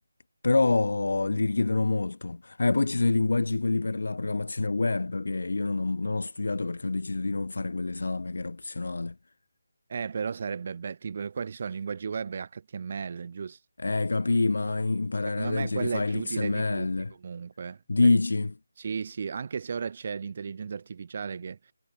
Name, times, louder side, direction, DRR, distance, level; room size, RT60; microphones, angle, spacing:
voice 1, 0.4-9.2 13.8-17.1 17.9-18.5, left 3 dB, 70° left, 5.7 m, -26 dB
voice 2, 9.9-13.6 15.3-16.9 17.2-18.1 18.8-21.7, right 6 dB, 35° right, 3.2 m, -34 dB
figure-of-eight pair, 175°, 0 cm